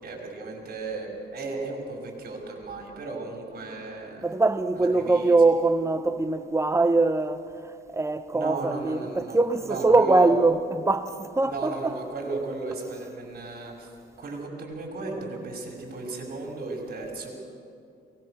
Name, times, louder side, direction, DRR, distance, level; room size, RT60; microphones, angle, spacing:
voice 1, 0.0-4.3 4.7-5.4 8.3-9.4 9.6-10.3 11.4-13.9 14.2-17.3, right 3 dB, 50° right, 5.4 m, -35 dB
voice 2, 4.2-7.4 7.9-12.0, right 3 dB, 15° right, 1.0 m, -22 dB
22.5 x 19.5 x 6.6 m
cardioid pair, 90°, 20 cm